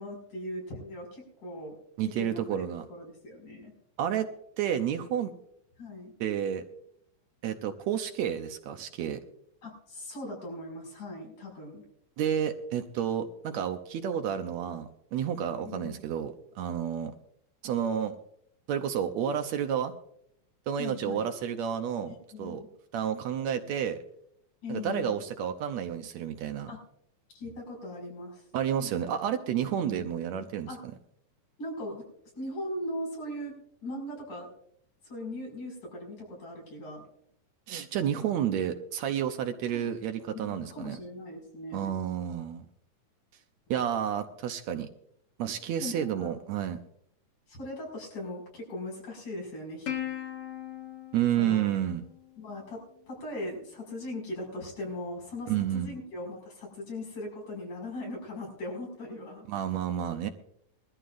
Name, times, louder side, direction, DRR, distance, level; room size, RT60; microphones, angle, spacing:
voice 1, 0.0-1.8 2.2-3.7 5.8-6.1 9.6-11.8 15.7-16.0 20.8-21.3 22.1-22.7 24.6-25.2 26.7-26.8 27.3-28.4 29.7-30.2 30.7-30.8 31.6-34.5 35.0-37.1 39.7-41.9 45.8-46.3 47.5-49.9 51.4-51.7 52.4-52.8 53.1-59.5, left 1 dB, 75° left, -1 dB, 7.2 m, -39 dB
voice 2, 2.0-2.9 4.0-4.3 4.6-5.3 6.2-6.6 7.4-9.2 12.2-17.1 17.6-18.2 18.7-19.9 20.7-22.1 22.4-22.6 22.9-24.0 24.7-26.7 28.5-30.7 37.7-41.0 41.7-42.6 43.7-44.9 45.4-46.8 51.1-52.0 55.5-55.9 59.5-60.3, right 9 dB, 70° right, 7 dB, 1.9 m, -30 dB
Plucked string instrument, 49.9-52.6, left 11 dB, 55° left, 2.4 m, -39 dB
22.0 x 13.5 x 2.5 m, 0.71 s
omnidirectional pair, 3.5 m